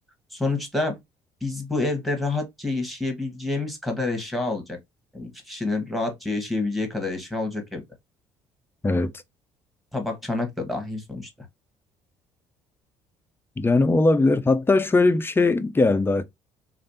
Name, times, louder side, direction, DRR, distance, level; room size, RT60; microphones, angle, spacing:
voice 1, 0.3-1.0 1.4-4.8 5.1-7.8 9.9-11.5, left 2 dB, ahead, 1.5 m, -28 dB
voice 2, 13.6-16.3, left 3 dB, 15° left, 0.5 m, -20 dB
3.2 x 2.5 x 2.7 m
hypercardioid pair, 65°, 14 cm